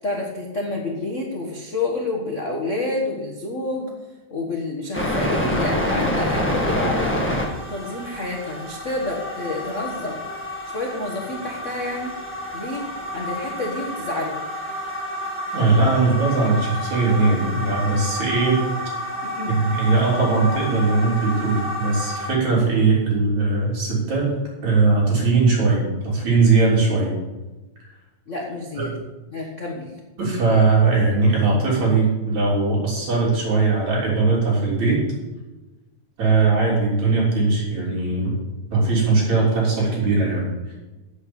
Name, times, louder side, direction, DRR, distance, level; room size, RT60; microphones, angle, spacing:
voice 1, 0.0-3.9 4.3-10.2 10.6-12.1 12.5-14.4 19.2-19.6 28.3-28.9 29.3-29.9, left 2 dB, 50° left, -1 dB, 0.8 m, -29 dB
sound 1, 4.9-22.3, left 1 dB, 15° left, 0.4 m, -28 dB
voice 2, 15.5-18.6 19.5-24.3 24.6-27.1 28.8-28.9 30.2-35.0 36.2-38.3 38.7-40.4, right 3 dB, 65° right, -5 dB, 4.8 m, -19 dB
8.4 x 8.1 x 6.9 m, 1.1 s
omnidirectional pair, 3.5 m